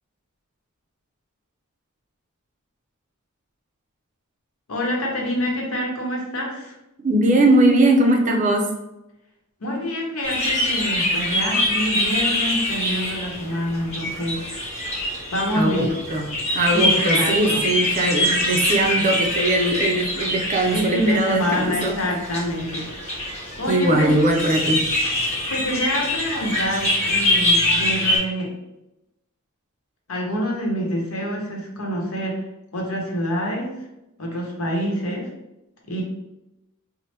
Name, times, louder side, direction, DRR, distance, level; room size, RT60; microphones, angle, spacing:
voice 1, 4.7-6.7 9.6-14.5 15.3-15.9 16.7-17.7 20.7-22.9 23.6-24.1 25.5-28.5 30.1-32.4 32.7-33.7 34.2-35.3 35.9-36.0, equal, 80° left, 0 dB, 0.8 m, -26 dB
voice 2, 7.0-8.7 15.5-16.3 16.5-22.0 23.7-24.8, right 1 dB, 35° right, 2 dB, 0.5 m, -20 dB
sound 1, 10.2-28.2, left 1 dB, 35° left, 1.1 m, -24 dB
2.8 x 2.0 x 3.2 m, 0.91 s
head